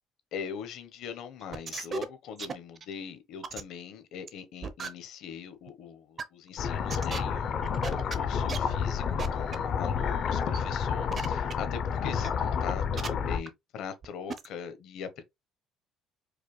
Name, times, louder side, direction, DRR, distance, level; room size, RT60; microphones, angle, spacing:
voice 1, 0.3-15.2, left 7 dB, 60° left, 0.8 m, -41 dB
sound 1, 1.4-2.0 2.4-2.9 3.4-3.6 4.3-4.4 4.6-4.9 5.7-5.8 6.2-6.3 6.9-7.2 7.6-8.1 8.5-8.6 9.2-9.3 9.5-9.6 10.3-10.6 11.1-11.5 12.2-12.3 13.0-13.1 13.5-13.6 14.0-14.1 14.3-14.5, right 5 dB, 30° right, 0.5 m, -35 dB
sound 2, 6.6-13.4, left 6 dB, 40° left, 0.4 m, -30 dB
4.9 x 2.1 x 3.0 m
cardioid pair, 170°, 0 cm